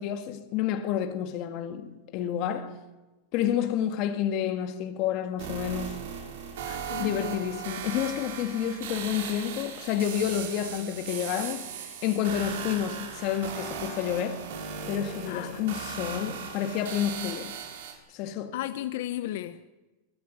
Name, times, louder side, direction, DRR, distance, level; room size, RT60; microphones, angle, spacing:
voice 1, 0.0-2.8 3.3-6.0 7.0-14.5 14.9-17.6 18.1-18.5, left 10 dB, 45° left, 2.0 m, -30 dB
sound 1, 5.4-17.9, right 7 dB, 70° right, 5.6 m, -38 dB
voice 2, 6.6-7.4 15.3-15.6 18.5-19.7, left 13 dB, 65° left, 1.1 m, -35 dB
23.0 x 16.5 x 8.7 m
supercardioid pair, 155°, 0 cm